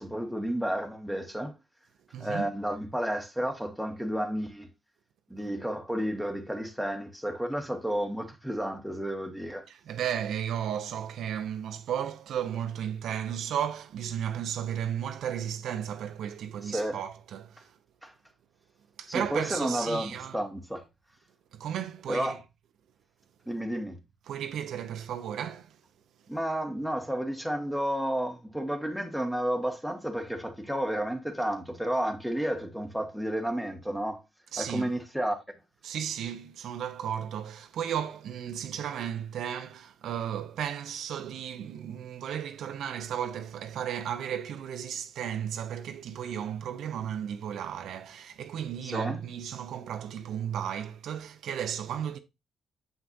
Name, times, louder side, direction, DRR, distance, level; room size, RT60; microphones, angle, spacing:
voice 1, 0.0-1.5 2.2-4.7 5.3-9.7 16.6-17.0 18.0-18.1 19.1-20.8 22.1-22.4 23.5-24.0 26.3-34.2 34.6-35.4 48.8-49.2, equal, ahead, 1.3 m, -31 dB
voice 2, 2.1-2.5 9.7-17.7 19.0-20.4 21.5-22.4 24.3-25.8 34.5-34.9 35.8-52.2, right 9 dB, 75° right, 0.6 m, -34 dB
6.6 x 5.8 x 2.6 m
cardioid pair, 90°, 0 cm